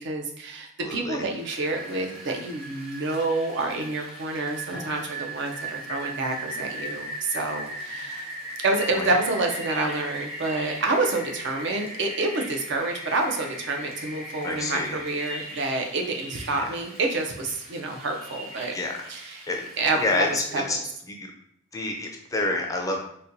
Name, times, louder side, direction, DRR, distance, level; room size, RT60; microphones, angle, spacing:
voice 1, 0.0-8.3 8.6-18.7 19.1-19.5 19.8-20.3 20.5-20.8, right 2 dB, 60° right, 3 dB, 0.5 m, -28 dB
voice 2, 0.8-1.3 8.9-9.1 14.4-15.0 16.5-16.7 18.7-19.1 19.5-19.6 20.0-20.8 21.1-21.3 21.7-23.0, left 2 dB, 15° left, 2 dB, 0.4 m, -28 dB
Rain, 1.2-20.7, right 1 dB, 30° right, 0.9 m, -39 dB
sound 1, 4.6-5.6 6.2-9.0, equal, 80° right, 1.1 m, -49 dB
4.0 x 2.2 x 2.6 m, 0.72 s
head